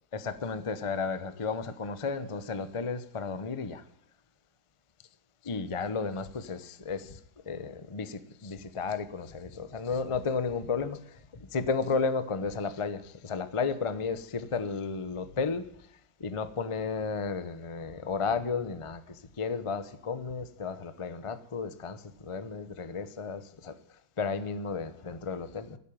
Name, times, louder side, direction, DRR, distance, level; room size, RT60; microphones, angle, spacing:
voice 1, 0.1-3.8 5.4-7.2 7.5-11.0 11.3-15.6 16.2-23.7 24.2-25.8, left 4 dB, 55° left, 0.3 m, -33 dB
16.0 x 8.3 x 9.0 m
omnidirectional pair, 2.4 m